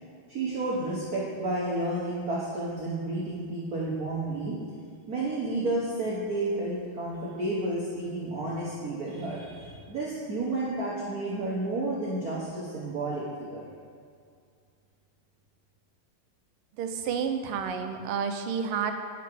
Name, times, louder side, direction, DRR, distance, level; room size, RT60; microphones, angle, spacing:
voice 1, 0.3-4.6 5.1-13.6, right 2 dB, 50° right, -6 dB, 1.3 m, -31 dB
voice 2, 16.8-18.9, right 6 dB, 85° right, 6 dB, 1.5 m, -30 dB
9.2 x 6.0 x 4.6 m, 2.2 s
omnidirectional pair, 2.4 m